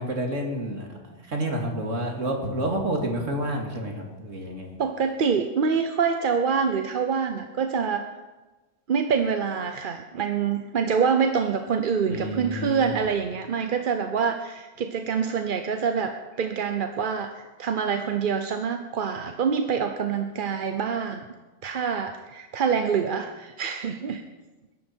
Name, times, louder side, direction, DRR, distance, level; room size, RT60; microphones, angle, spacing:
voice 1, 0.0-4.8 12.1-12.9, right 1 dB, 65° right, 2 dB, 2.6 m, -29 dB
voice 2, 4.8-8.0 8.9-21.2 21.6-24.2, right 6 dB, 45° right, 7 dB, 0.8 m, -26 dB
20.5 x 11.5 x 4.5 m, 1.2 s
omnidirectional pair, 1.4 m